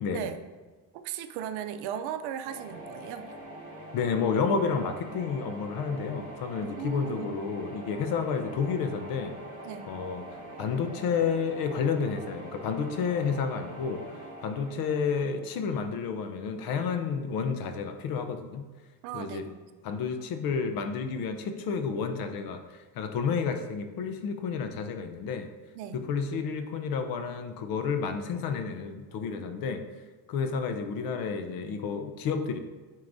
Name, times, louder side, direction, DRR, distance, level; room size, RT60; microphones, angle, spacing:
voice 1, 0.9-3.3 6.6-7.4 9.6-9.9 19.0-19.6 25.7-26.0, right 9 dB, 90° right, 9 dB, 0.6 m, -37 dB
sound 1, 2.4-16.3, right 1 dB, 35° right, 2.0 m, -44 dB
voice 2, 3.9-9.3 9.9-18.7 19.1-19.4 19.8-25.5 25.9-29.8 30.3-32.6, left 5 dB, 60° left, 7 dB, 0.7 m, -30 dB
9.2 x 4.7 x 2.6 m, 1.3 s
cardioid pair, 125°, 39 cm